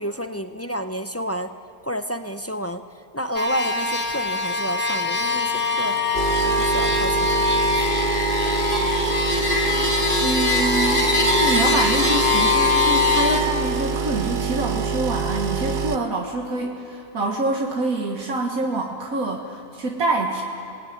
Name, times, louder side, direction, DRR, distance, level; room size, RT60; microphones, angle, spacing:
voice 1, 0.0-1.5 1.8-6.0 6.4-7.4, equal, 15° left, 8 dB, 0.5 m, -30 dB
sound 1, 3.4-13.4, left 3 dB, 35° left, 2.3 m, -22 dB
sound 2, 6.1-16.0, right 4 dB, 45° right, 1.0 m, -25 dB
voice 2, 10.2-20.4, right 2 dB, 80° right, 0 dB, 2.0 m, -26 dB
27.5 x 19.5 x 9.3 m, 2.6 s
omnidirectional pair, 1.5 m